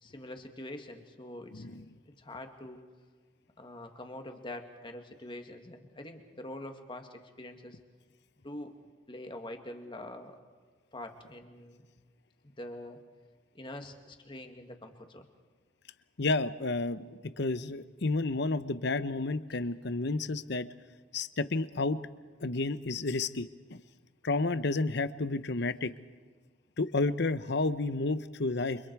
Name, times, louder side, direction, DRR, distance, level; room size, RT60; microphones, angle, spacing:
voice 1, 0.0-1.7 2.1-2.8 3.6-7.8 8.4-8.7 9.1-10.4 10.9-11.9 12.4-13.0 13.5-15.3, left 1 dB, 25° left, 5 dB, 2.1 m, -44 dB
voice 2, 16.2-20.7 21.1-22.0 22.4-23.8 24.2-25.9 26.8-28.8, left 3 dB, 60° left, 14 dB, 0.9 m, -31 dB
29.0 x 26.0 x 4.7 m, 1.4 s
head